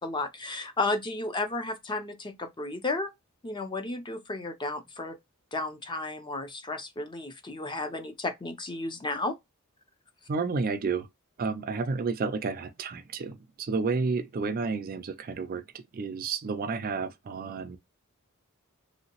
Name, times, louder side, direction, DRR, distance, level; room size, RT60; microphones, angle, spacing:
voice 1, 0.0-3.1 3.4-5.2 5.5-9.4, left 2 dB, 20° left, 0.5 m, -33 dB
voice 2, 10.3-11.1 11.4-17.8, right 4 dB, 40° right, 0.4 m, -31 dB
3.2 x 2.8 x 2.9 m
head